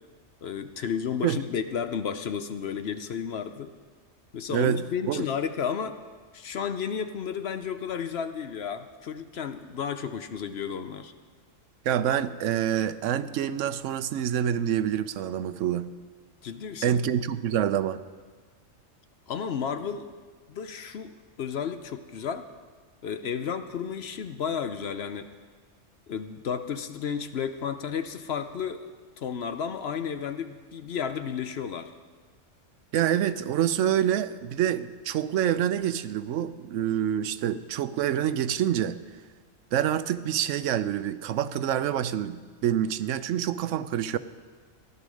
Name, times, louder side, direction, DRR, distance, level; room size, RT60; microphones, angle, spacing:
voice 1, 0.4-3.7 4.3-6.0 6.3-11.1 16.4-17.0 19.3-20.1 20.5-22.5 23.0-25.3 26.1-28.9 29.2-31.9, left 7 dB, 55° left, 9 dB, 0.9 m, -32 dB
voice 2, 4.5-5.3 11.8-15.9 16.8-18.0 32.9-39.0 39.7-44.2, right 10 dB, 70° right, 13 dB, 0.9 m, -27 dB
15.0 x 11.0 x 6.3 m, 1.5 s
omnidirectional pair, 1.4 m